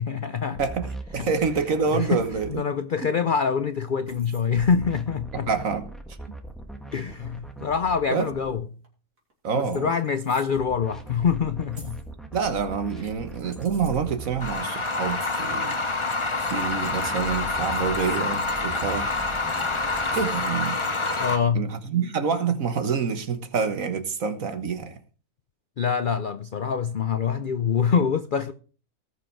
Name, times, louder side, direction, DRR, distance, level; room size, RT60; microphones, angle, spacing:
voice 1, 0.0-0.6 1.2-1.3 1.9-2.2 2.5-5.5 6.9-8.7 9.5-12.0 21.2-21.7 25.8-28.5, left 6 dB, 65° left, 0.5 m, -25 dB
sound 1, 0.6-2.5 4.6-8.5 10.6-14.5 16.6-20.3, right 2 dB, ahead, 1.4 m, -40 dB
voice 2, 0.6-2.5 5.3-5.8 6.3-6.4 8.1-8.3 9.4-9.9 12.3-16.1 16.4-19.2 20.1-20.8 21.5-25.0, right 6 dB, 60° right, 1.7 m, -27 dB
sound 2, 1.8-2.4 4.0-4.5 6.5-6.6 8.8-8.9 9.2-9.3 9.7-10.6 11.7-12.1 13.3-14.0 15.1-15.5 17.3-18.4 18.9-19.5 20.1-20.5, right 2 dB, 80° right, 3.9 m, -50 dB
sound 3, 14.4-21.4, left 3 dB, 20° left, 0.9 m, -27 dB
19.0 x 6.4 x 4.6 m
omnidirectional pair, 1.6 m